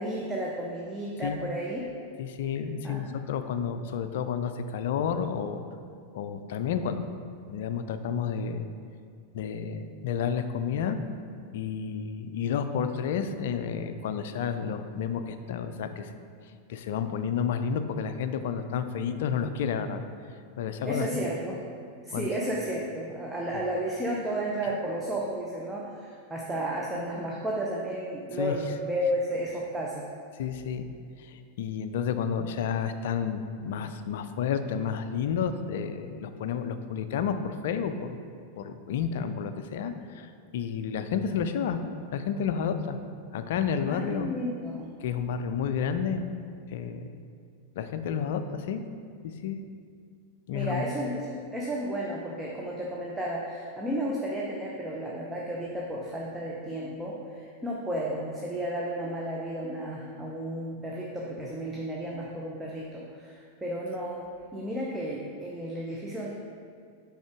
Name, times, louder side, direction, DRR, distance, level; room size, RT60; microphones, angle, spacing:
voice 1, 0.0-1.9 2.8-3.2 20.9-21.6 22.0-30.1 43.8-44.9 50.5-66.3, right 1 dB, 10° right, -4 dB, 0.7 m, -33 dB
voice 2, 2.2-5.6 6.1-7.1 7.5-8.7 9.3-11.0 11.5-16.1 16.7-20.0 20.6-21.1 22.1-22.3 28.3-28.5 30.3-30.8 31.2-38.2 38.6-41.8 42.1-43.0 43.3-44.3 45.0-46.2 46.7-47.1 47.8-48.8 49.4-49.6 50.5-50.9, left 7 dB, 55° left, 9 dB, 0.4 m, -31 dB
6.2 x 4.9 x 3.5 m, 2.3 s
figure-of-eight pair, 90°, 0 cm